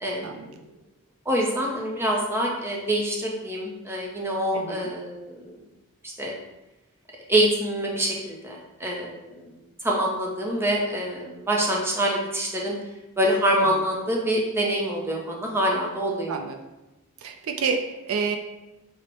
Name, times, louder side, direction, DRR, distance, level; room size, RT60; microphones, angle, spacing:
voice 1, 0.0-0.5 1.3-5.6 6.2-6.3 7.3-9.5 9.8-12.8 13.2-16.4, right 1 dB, 10° right, -2 dB, 0.5 m, -25 dB
voice 2, 4.5-4.9 16.3-16.6 17.2-18.4, right 5 dB, 65° right, 4 dB, 0.4 m, -29 dB
6.1 x 2.0 x 2.9 m, 0.99 s
head